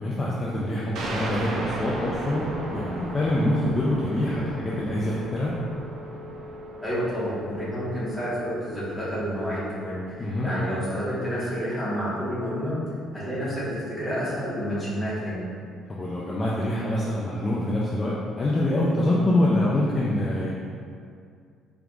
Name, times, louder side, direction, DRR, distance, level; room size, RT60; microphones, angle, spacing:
voice 1, 0.0-5.5 10.2-10.5 15.9-20.7, left 1 dB, 20° left, -6 dB, 0.4 m, -25 dB
sound 1, 0.9-10.2, right 2 dB, 55° right, 0.6 m, -37 dB
Telephone, 1.7-10.0, left 2 dB, 85° left, 0.7 m, -43 dB
voice 2, 6.8-12.8 13.1-15.5, equal, ahead, -12 dB, 1.5 m, -29 dB
4.5 x 3.4 x 2.5 m, 2.3 s
cardioid pair, 150°, 0 cm